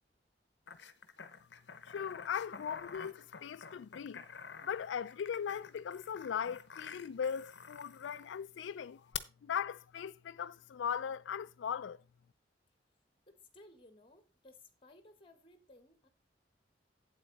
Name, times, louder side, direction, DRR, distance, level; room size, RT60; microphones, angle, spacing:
sound 1, 0.7-8.3 9.1-9.2, left 7 dB, 70° left, 0.9 m, -48 dB
voice 1, 1.9-4.3 4.6-9.1 9.4-12.0, left 7 dB, 90° left, 0.3 m, -39 dB
voice 2, 13.3-16.1, left 2 dB, 30° left, 1.7 m, -59 dB
8.8 x 8.0 x 4.1 m
head